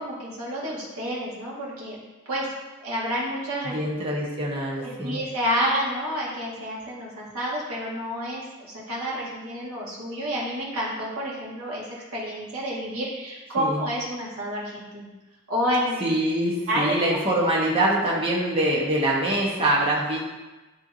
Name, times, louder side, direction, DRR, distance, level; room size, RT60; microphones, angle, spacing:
voice 1, 0.0-2.0 2.3-2.5 2.8-3.8 4.8-11.8 12.1-15.1 15.5-16.0 16.7-17.0, equal, 85° right, -6 dB, 2.0 m, -29 dB
voice 2, 3.6-5.2 13.6-13.8 16.0-20.2, right 1 dB, 25° right, -5 dB, 1.2 m, -24 dB
10.5 x 3.5 x 2.7 m, 1.1 s
head